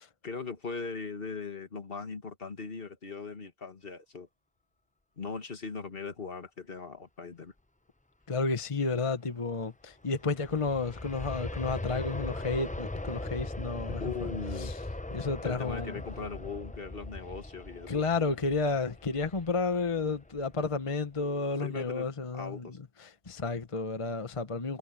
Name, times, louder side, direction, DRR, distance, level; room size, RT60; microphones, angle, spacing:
voice 1, 0.2-4.3 5.2-7.5 13.9-14.7 15.4-18.0 21.6-22.1 22.3-22.8, left 4 dB, 60° left, 1.9 m, -39 dB
voice 2, 8.3-14.3 14.6-14.7 15.1-16.0 17.9-24.8, left 4 dB, 30° left, 1.1 m, -32 dB
Aircraft, 9.9-20.8 21.2-21.3, left 2 dB, 10° left, 0.5 m, -40 dB
omnidirectional pair, 1.1 m